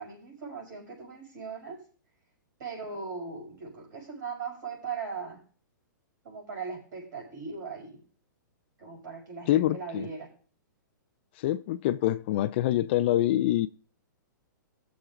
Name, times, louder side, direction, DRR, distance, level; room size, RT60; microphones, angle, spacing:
voice 1, 0.0-1.8 2.6-5.4 6.2-8.0 8.8-10.3, right 5 dB, 65° right, 5.6 m, -39 dB
voice 2, 9.5-10.1 11.4-13.7, left 13 dB, 35° left, 0.4 m, -25 dB
19.5 x 7.1 x 2.5 m
hypercardioid pair, 160°, 11 cm